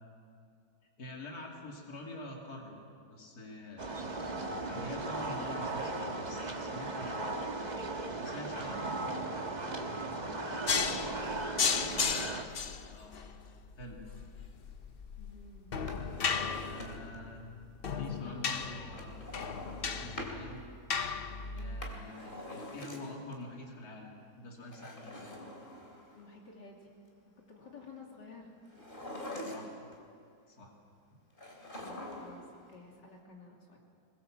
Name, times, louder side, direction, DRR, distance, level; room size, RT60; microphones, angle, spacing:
voice 1, 1.0-7.3 8.2-9.0 12.8-13.2 13.8-14.0 16.6-17.4 18.0-19.2 20.0-20.6 21.5-25.3 29.5-29.7 30.5-30.7, left 1 dB, 60° left, -1 dB, 3.2 m, -46 dB
sound 1, 3.8-12.4, right 2 dB, 25° right, 1.3 m, -37 dB
voice 2, 10.2-11.0 15.2-15.7 17.9-18.9 21.4-21.8 26.1-26.9 27.2-28.5 31.7-33.8, left 3 dB, 85° left, -1 dB, 3.4 m, -53 dB
sound 2, 10.7-21.9, left 5 dB, 45° left, 0.8 m, -35 dB
Drawer open or close, 15.7-17.2 18.9-20.4 21.6-23.3 24.6-26.3 28.7-29.9 31.4-32.5 32.7-32.8, left 1 dB, 30° left, 3.1 m, -45 dB
22.0 x 21.0 x 7.4 m, 2.5 s
omnidirectional pair, 1.8 m